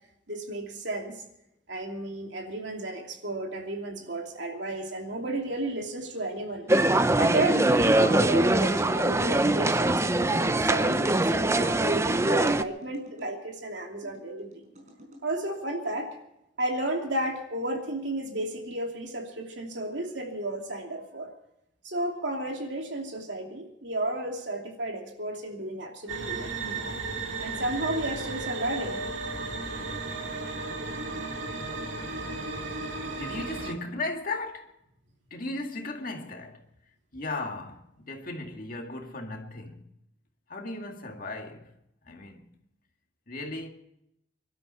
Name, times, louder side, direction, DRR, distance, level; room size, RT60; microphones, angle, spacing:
voice 1, 0.3-1.2 1.7-6.8 7.2-14.6 15.2-16.2 16.6-21.4 21.8-26.9 27.4-29.0, right 1 dB, 70° right, 2.8 m, -33 dB
sound 1, 6.7-12.6, right 2 dB, 15° right, 0.5 m, -23 dB
sound 2, 12.5-13.3 14.0-15.2, equal, 40° right, 4.8 m, -52 dB
demons-and-angels, 26.1-33.7, right 3 dB, 85° right, 2.1 m, -34 dB
voice 2, 33.1-34.7 35.3-36.7 37.1-39.9 40.5-41.7 42.0-42.5 43.3-43.7, left 2 dB, 45° left, 2.0 m, -36 dB
24.5 x 12.5 x 4.2 m
head